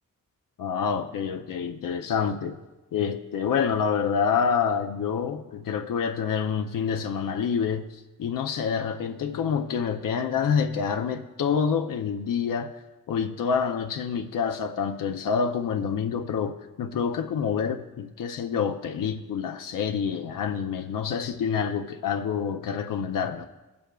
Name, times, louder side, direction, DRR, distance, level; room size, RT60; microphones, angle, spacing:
voice 1, 0.6-2.6 2.9-12.8 13.1-23.5, left 6 dB, 90° left, 0.6 m, -27 dB
18.5 x 6.9 x 2.3 m
wide cardioid pair, 95°, 32 cm